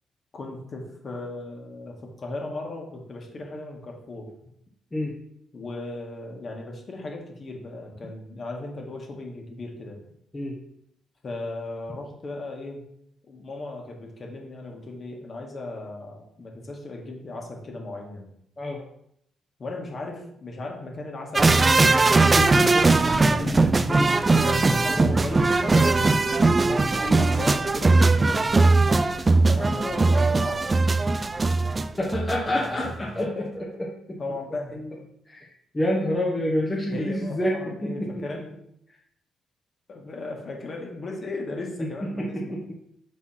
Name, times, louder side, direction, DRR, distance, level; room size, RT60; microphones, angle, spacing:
voice 1, 0.3-4.3 5.5-10.0 11.2-12.8 13.3-18.3 19.6-22.2 23.3-26.4 26.9-28.7 29.5-31.0 32.5-33.2 34.2-35.0 36.9-38.5 39.9-42.6, left 2 dB, 40° left, 0 dB, 1.7 m, -36 dB
sound 1, 21.3-32.5 32.8-32.9, right 3 dB, 25° right, 0.3 m, -20 dB
voice 2, 22.3-22.9 23.4-23.6 26.7-26.9 32.0-34.2 35.3-35.5 35.7-38.2 41.8-42.7, left 1 dB, 20° left, -3 dB, 1.1 m, -28 dB
5.9 x 4.1 x 4.2 m, 0.73 s
cardioid pair, 90°, 0 cm